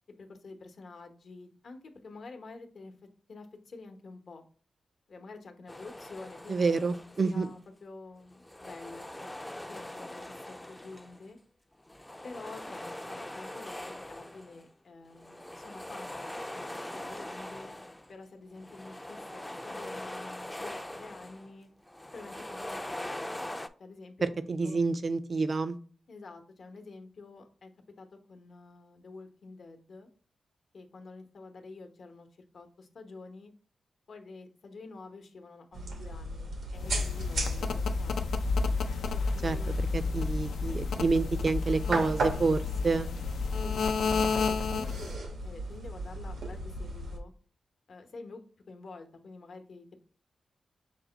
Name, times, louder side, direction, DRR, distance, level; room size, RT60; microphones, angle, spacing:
voice 1, 0.2-2.9 3.3-4.4 5.1-6.7 7.2-9.3 9.7-11.4 12.2-17.8 18.1-21.7 22.1-24.3 24.6-24.8 26.1-27.7 28.0-30.1 30.7-32.3 32.5-33.5 34.1-38.3 39.1-39.9 43.5-45.1 45.4-47.3 47.9-48.4 48.7-50.0, left 3 dB, 65° left, 5 dB, 0.8 m, -48 dB
sound 1, 5.7-7.5 8.3-11.3 11.9-14.7 15.1-18.1 18.5-21.5 21.9-23.7, left 1 dB, 10° left, 0.4 m, -42 dB
voice 2, 6.5-7.5 24.2-25.8 39.4-39.6 39.9-43.1, right 4 dB, 50° right, 12 dB, 0.4 m, -28 dB
sound 2, 35.7-47.2, right 2 dB, 85° right, 0.9 m, -37 dB
sound 3, 36.8-45.1, left 5 dB, 90° left, 0.3 m, -31 dB
5.9 x 2.1 x 3.8 m, 0.41 s
cardioid pair, 65°, 0 cm